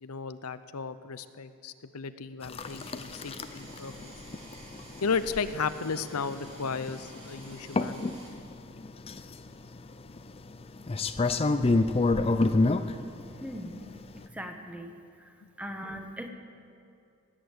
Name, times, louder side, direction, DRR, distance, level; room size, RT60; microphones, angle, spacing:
voice 1, 0.0-4.1 5.0-8.1, left 5 dB, 90° left, 12 dB, 0.6 m, -34 dB
sound 1, 2.4-14.3, left 2 dB, 25° left, 0.4 m, -30 dB
sound 2, 2.6-8.3, right 2 dB, 30° right, 2.9 m, -51 dB
voice 2, 13.3-13.9 14.2-15.0 15.6-16.3, equal, 5° right, 4 dB, 1.0 m, -40 dB
18.0 x 9.0 x 7.9 m, 2.6 s
head